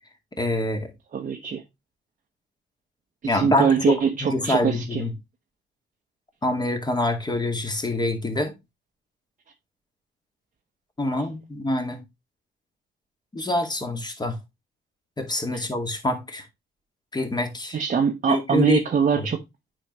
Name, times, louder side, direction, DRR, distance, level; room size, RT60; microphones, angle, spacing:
voice 1, 0.4-0.9 3.2-5.1 6.4-8.5 11.0-12.0 13.3-14.4 15.2-16.4 17.1-17.8 18.3-18.8 19.2-19.3, left 1 dB, 20° left, 2.1 m, -26 dB
voice 2, 1.1-1.6 3.2-5.0 11.1-11.2 15.5-15.6 17.7-19.4, right 7 dB, 40° right, 0.9 m, -23 dB
8.7 x 5.3 x 3.0 m
cardioid pair, 90°, 20 cm